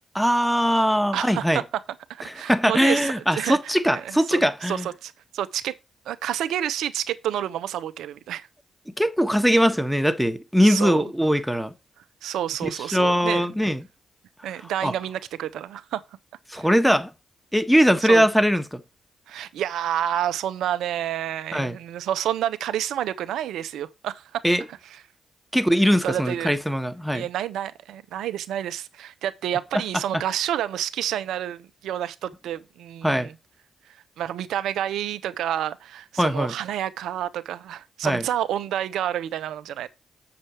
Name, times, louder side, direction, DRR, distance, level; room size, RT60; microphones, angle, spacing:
voice 1, 0.1-1.6 2.4-4.9 9.0-11.7 12.6-13.8 14.8-14.9 16.5-17.1 17.5-18.8 21.5-21.8 24.4-24.6 25.5-27.3 30.1-30.2 33.0-33.3 36.2-36.5 38.0-38.2, equal, ahead, 1.4 m, -21 dB
voice 2, 1.1-1.8 2.1-5.8 6.1-8.5 10.6-11.0 12.2-13.7 14.4-16.0 16.5-16.7 18.0-18.2 19.3-24.4 26.0-26.5 27.1-33.3 34.2-39.9, right 11 dB, 75° right, 0.7 m, -29 dB
7.5 x 6.8 x 4.4 m
hypercardioid pair, 45°, 0 cm